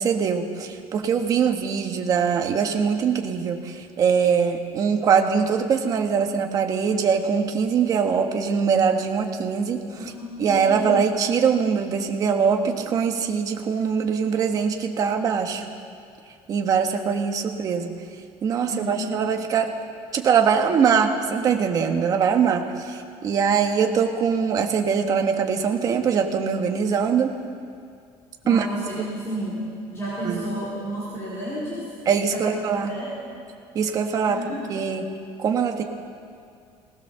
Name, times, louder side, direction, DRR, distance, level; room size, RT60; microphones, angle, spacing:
voice 1, 0.0-10.1 10.4-15.6 16.5-17.9 18.4-19.7 20.1-27.4 28.5-28.7 29.0-29.1 30.2-30.5 32.0-32.9 33.7-35.1 35.4-35.8, right 6 dB, 35° right, 4 dB, 1.5 m, -22 dB
voice 2, 9.9-11.0 18.7-19.1 28.4-29.6 29.9-31.9 32.3-32.6 32.9-33.1 34.3-34.6, right 1 dB, 25° left, -8 dB, 4.4 m, -31 dB
19.5 x 19.0 x 6.9 m, 2.3 s
cardioid pair, 175°, 11 cm